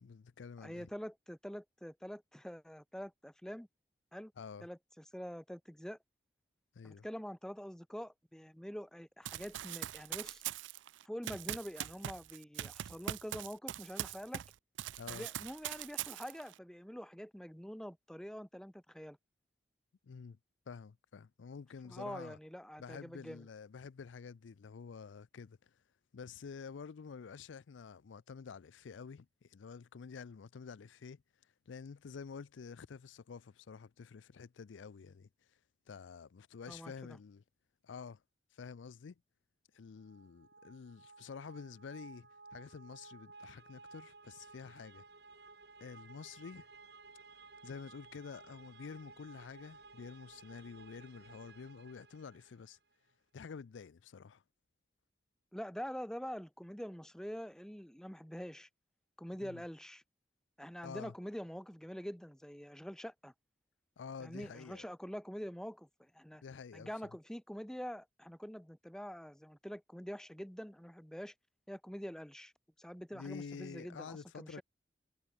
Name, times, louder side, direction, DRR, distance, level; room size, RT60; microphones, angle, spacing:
voice 1, 0.0-0.9 4.4-4.7 6.7-7.1 15.0-15.3 20.0-20.4 20.7-22.4 22.8-25.7 26.1-31.2 31.7-35.3 35.9-37.4 37.8-38.2 38.5-39.2 39.7-45.0 45.8-46.7 47.6-52.8 53.3-54.4 59.4-59.6 60.8-61.1 64.0-64.9 66.4-66.9 73.1-74.6, left 5 dB, 90° left, 0.4 m, -49 dB
voice 2, 0.6-3.7 4.1-4.3 4.6-6.0 6.8-10.4 11.0-14.4 15.1-19.2 21.8-23.5 36.7-37.2 55.5-58.7 59.2-60.0 60.6-63.3 64.2-66.4 66.7-71.3 71.7-72.5 72.8-74.6, equal, 5° left, 0.9 m, -45 dB
Run, 9.3-14.5 14.8-16.5, right 11 dB, 85° right, 0.4 m, -42 dB
sound 1, 40.0-52.8, right 3 dB, 60° right, 3.6 m, -57 dB
head